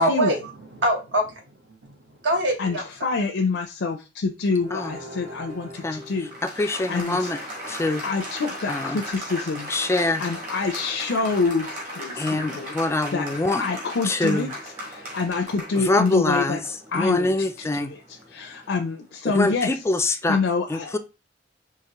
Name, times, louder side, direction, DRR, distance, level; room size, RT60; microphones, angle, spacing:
voice 1, 0.0-3.2, right 1 dB, 75° right, 1.1 m, -25 dB
voice 2, 3.0-6.3 6.6-7.3 8.0-9.7 10.2-12.7 13.1-13.3 13.6-14.5 14.9-16.6 16.9-17.3 17.7-18.0 18.3-19.7 20.3-21.0, left 4 dB, 85° left, 0.5 m, -26 dB
Applause, 4.6-18.9, equal, 45° right, 1.8 m, -37 dB
voice 3, 5.8-7.4 7.7-8.0 8.7-9.0 9.7-10.2 12.2-13.7 14.0-14.5 15.7-16.6 16.9-17.9 19.2-20.4 20.7-21.0, left 2 dB, 15° left, 0.3 m, -25 dB
4.7 x 2.9 x 2.9 m
head